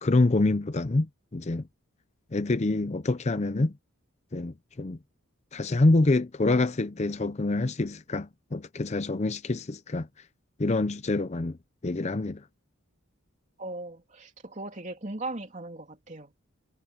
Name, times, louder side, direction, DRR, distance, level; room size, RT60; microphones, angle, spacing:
voice 1, 0.0-1.7 2.3-3.7 4.3-5.0 5.5-10.1 10.6-11.6 11.8-12.4, left 2 dB, 30° left, 0.6 m, -26 dB
voice 2, 13.6-16.3, right 2 dB, 35° right, 3.2 m, -38 dB
head